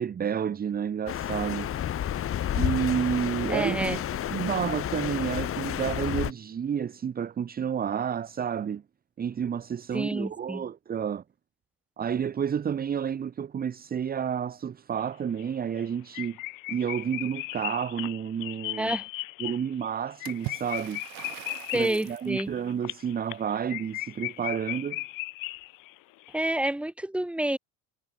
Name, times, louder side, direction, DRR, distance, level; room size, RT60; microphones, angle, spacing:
voice 1, 0.0-1.7 2.5-4.0 4.3-8.8 9.2-11.2 12.0-16.4 16.7-18.9 19.4-21.0 21.7-25.0, right 8 dB, 25° right, 1.6 m, -30 dB
sound 1, 1.1-6.3, left 11 dB, 40° left, 4.2 m, -30 dB
voice 2, 3.5-4.0 9.9-10.7 18.8-19.1 21.7-22.5 26.3-27.6, right 1 dB, 5° right, 3.9 m, -28 dB
sound 2, 15.0-15.1 15.4-15.5 15.8-15.9 16.1-26.0 26.2-26.3, left 23 dB, 70° left, 2.1 m, -37 dB
Water / Splash splatter, 20.3-22.3, right 26 dB, 75° right, 4.2 m, -41 dB
cardioid pair, 145°, 34 cm